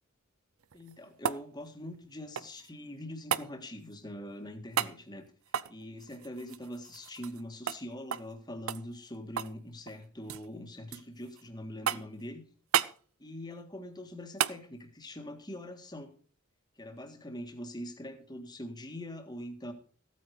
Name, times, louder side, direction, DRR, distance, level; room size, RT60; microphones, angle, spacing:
sound 1, 0.6-2.7 3.3-3.5 4.7-5.0 5.5-7.4 7.7-7.8 8.1-8.3 8.7-9.6 9.9-10.5 10.9-11.4 11.9-12.2 12.7-13.0 14.4-14.6 17.0-17.1, right 9 dB, 70° right, 0.5 m, -33 dB
voice 1, 0.7-5.3 5.7-12.4 13.2-16.1 16.8-19.7, left 1 dB, 20° left, 5 dB, 1.7 m, -43 dB
15.0 x 9.3 x 5.0 m, 0.41 s
head